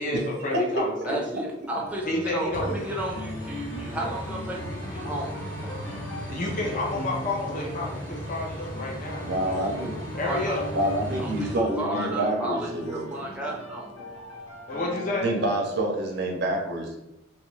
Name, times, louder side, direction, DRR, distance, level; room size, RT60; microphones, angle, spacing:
voice 1, 0.0-1.2 2.1-2.7 3.9-4.1 6.3-9.9 10.2-10.6 14.7-15.3, left 2 dB, 45° left, -2 dB, 0.6 m, -30 dB
voice 2, 1.1-5.3 10.2-10.6 11.2-13.9, right 1 dB, 5° right, -2 dB, 0.5 m, -33 dB
sound 1, 1.7-15.4, left 1 dB, 65° left, 0.9 m, -40 dB
sound 2, 2.5-11.6, equal, 10° left, 1.1 m, -37 dB
voice 3, 9.2-9.9 10.7-13.1 13.4-13.6 15.2-17.0, right 1 dB, 55° right, 1 dB, 0.5 m, -27 dB
2.9 x 2.4 x 3.1 m, 0.87 s
head